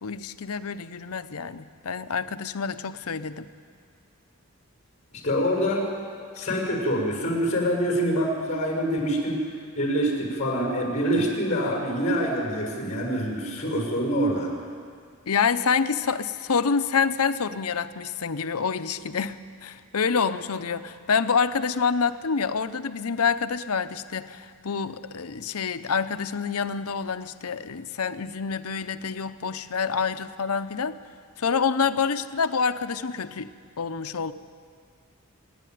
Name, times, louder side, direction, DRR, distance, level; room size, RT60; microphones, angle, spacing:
voice 1, 0.0-3.5 15.3-31.0 31.4-33.5 33.8-34.3, left 5 dB, 90° left, 12 dB, 0.8 m, -27 dB
voice 2, 5.1-5.9 6.4-9.5 9.8-14.5, equal, 35° left, 1 dB, 6.1 m, -25 dB
28.0 x 11.0 x 9.4 m, 2.1 s
head